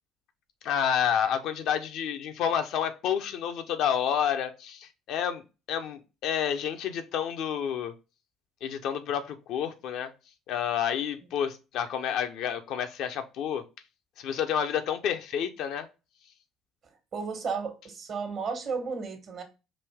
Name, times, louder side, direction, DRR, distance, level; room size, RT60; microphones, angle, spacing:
voice 1, 0.6-5.4 5.7-7.9 8.6-10.1 10.5-13.6 14.2-15.9, left 8 dB, 70° left, 0.6 m, -29 dB
voice 2, 17.1-19.4, right 5 dB, 55° right, 1.3 m, -33 dB
4.9 x 2.7 x 3.5 m
hypercardioid pair, 65°, 0 cm